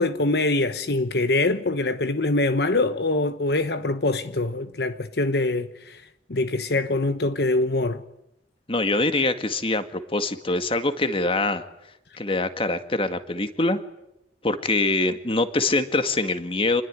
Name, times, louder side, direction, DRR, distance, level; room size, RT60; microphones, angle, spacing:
voice 1, 0.0-6.0 6.3-8.0, left 2 dB, 65° left, 1.1 m, -24 dB
voice 2, 8.7-11.6 12.2-13.8 14.4-16.8, left 2 dB, 30° left, 2.0 m, -24 dB
27.5 x 21.0 x 9.8 m
head